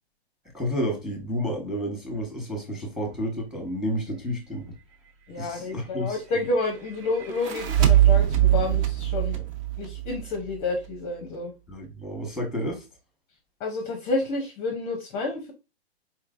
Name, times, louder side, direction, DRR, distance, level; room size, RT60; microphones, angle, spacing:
voice 1, 0.5-4.7 5.4-6.2 11.7-12.8, equal, ahead, 1.1 m, -30 dB
voice 2, 5.3-9.3 9.8-11.5 13.6-15.5, left 3 dB, 20° left, 0.6 m, -29 dB
sound 1, 7.2-10.6, right 12 dB, 30° right, 0.6 m, -22 dB
4.3 x 3.2 x 2.4 m
hypercardioid pair, 130°, 32 cm